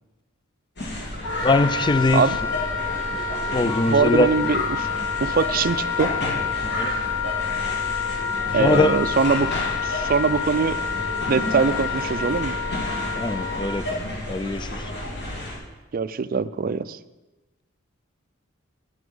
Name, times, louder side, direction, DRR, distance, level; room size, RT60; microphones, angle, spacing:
sound 1, 0.8-15.6, left 1 dB, 55° left, 2.5 m, -31 dB
Wind instrument woodwind instrument, 1.2-13.7, left 6 dB, 75° left, 2.0 m, -28 dB
voice 1, 1.4-2.2 3.5-4.3 6.6-7.0 8.6-9.0 13.2-14.8, left 2 dB, 25° left, 13 dB, 0.4 m, -22 dB
voice 2, 3.7-4.9 5.2-6.1 8.5-9.5 9.8-10.8 11.3-12.5 15.9-17.0, right 5 dB, 45° right, 15 dB, 0.4 m, -22 dB
9.4 x 9.4 x 5.4 m, 1.1 s
head